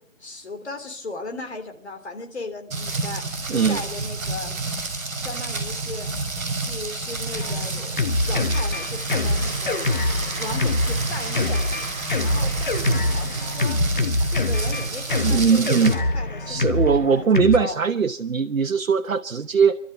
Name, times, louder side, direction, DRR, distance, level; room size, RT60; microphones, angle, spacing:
voice 1, 0.2-3.2 3.5-4.6 5.2-6.1 6.5-8.0 8.2-9.8 10.4-11.8 12.2-13.8 14.3-17.8, left 2 dB, 55° left, 6 dB, 3.4 m, -36 dB
Rain, 2.7-15.9, right 3 dB, 10° right, 2.5 m, -29 dB
voice 2, 3.5-3.8 15.2-15.9 16.5-19.8, right 6 dB, 90° right, 5 dB, 1.1 m, -20 dB
Drum kit, 7.3-17.6, left 2 dB, 40° left, 0.9 m, -25 dB
Applause, 8.5-14.5, right 1 dB, 5° left, 4.2 m, -39 dB
27.0 x 12.5 x 7.8 m, 0.69 s
figure-of-eight pair, 170°, 40 cm